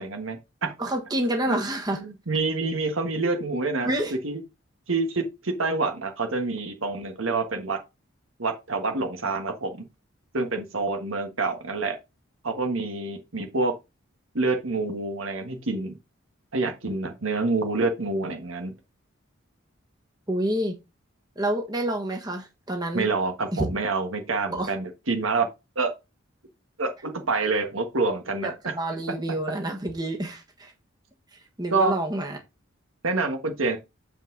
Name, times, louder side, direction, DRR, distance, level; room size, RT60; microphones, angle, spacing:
voice 1, 0.0-0.7 1.5-1.6 1.9-3.9 4.2-4.4 4.9-7.8 8.4-9.8 10.3-12.0 12.4-13.8 14.3-16.0 16.5-18.7 22.9-25.5 25.7-25.9 26.8-28.5 31.7-31.9 33.0-33.8, right 3 dB, 80° right, 1.5 m, -27 dB
voice 2, 0.8-2.0 3.8-4.1 20.3-20.7 21.4-23.1 23.5-23.7 24.5-24.7 28.4-30.7 31.6-32.4, right 1 dB, 20° right, 1.3 m, -28 dB
7.4 x 5.4 x 3.9 m
head